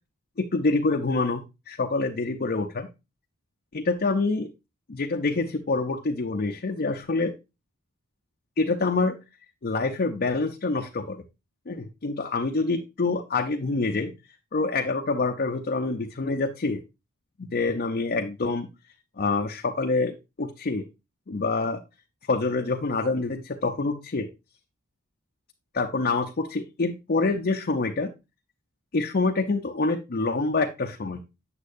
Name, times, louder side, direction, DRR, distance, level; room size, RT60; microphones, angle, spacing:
voice 1, 0.4-2.9 3.7-4.5 4.9-7.3 8.6-9.2 9.6-11.2 11.7-14.1 14.5-16.8 17.4-18.7 19.2-20.8 21.3-21.8 22.3-24.3 25.7-28.1 28.9-31.2, left 3 dB, 45° left, 2 dB, 0.6 m, -26 dB
8.3 x 7.4 x 2.6 m, 0.26 s
head